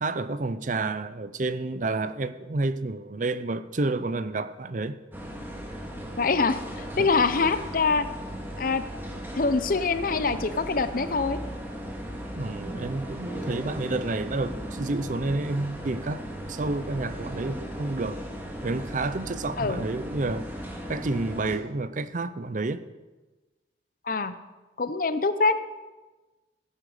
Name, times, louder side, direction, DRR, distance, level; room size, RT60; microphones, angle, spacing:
voice 1, 0.0-5.0 7.0-7.1 12.3-18.2 18.6-20.5 20.9-22.8, right 2 dB, 45° right, 0.6 m, -30 dB
sound 1, 5.1-21.6, equal, 10° right, 2.1 m, -37 dB
voice 2, 6.2-8.1 8.6-8.8 9.4-11.4 19.6-19.8 24.1-24.3 24.8-25.5, left 4 dB, 50° left, 0.7 m, -24 dB
16.5 x 9.9 x 5.0 m
head